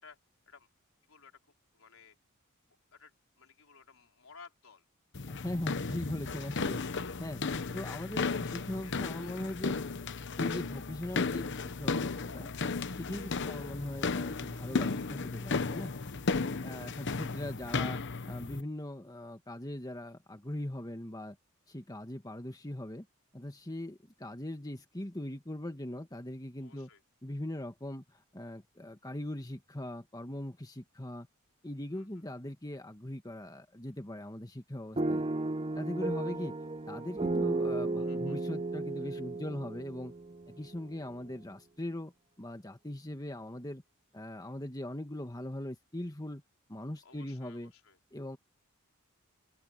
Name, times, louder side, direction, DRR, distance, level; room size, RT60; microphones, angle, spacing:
voice 1, 1.7-2.2 2.9-4.8 7.7-8.0 8.8-9.9 13.1-13.5 16.8-17.1 26.6-27.0 31.9-32.2 38.0-38.4 47.0-48.0, left 5 dB, 80° left, 4.3 m, -57 dB
sound 1, 5.1-18.6, left 4 dB, 60° left, 1.0 m, -34 dB
voice 2, 5.3-6.8 7.2-7.4 7.7-9.8 10.4-12.5 12.9-15.9 16.6-18.0 18.3-21.4 21.7-23.1 23.3-26.9 27.2-31.3 31.6-35.2 35.8-36.6 36.9-40.1 40.5-42.1 42.4-43.8 44.1-46.4 46.7-47.7 48.1-48.4, left 1 dB, 20° left, 1.7 m, -40 dB
sound 2, 35.0-41.0, right 2 dB, 30° right, 0.9 m, -34 dB
open air
head